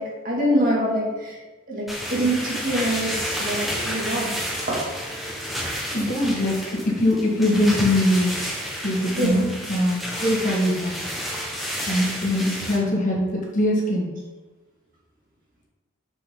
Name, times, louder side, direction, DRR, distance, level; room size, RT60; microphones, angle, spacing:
voice 1, 0.0-1.4 1.7-3.1 3.4-3.6 3.8-4.3 4.7-4.8 9.2-9.3, right 1 dB, 40° right, -4 dB, 2.4 m, -24 dB
sound 1, 1.9-12.8, equal, ahead, 1.4 m, -30 dB
voice 2, 5.9-8.5 8.8-10.9 11.9-14.1, left 1 dB, 40° left, -3 dB, 1.7 m, -22 dB
7.1 x 6.9 x 3.9 m, 1.2 s
head